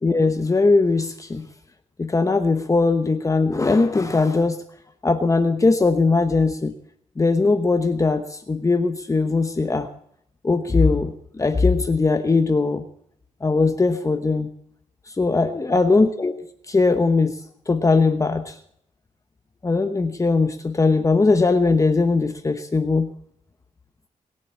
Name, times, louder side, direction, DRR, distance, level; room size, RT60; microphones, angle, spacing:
voice 1, 0.0-1.5 2.0-4.6 5.0-6.7 7.2-9.9 10.4-12.8 13.4-14.5 15.1-16.4 16.7-17.4 17.7-18.6 19.6-23.1, left 3 dB, 25° left, 7 dB, 1.0 m, -20 dB
21.0 x 7.6 x 8.6 m, 0.70 s
wide cardioid pair, 135°, 14 cm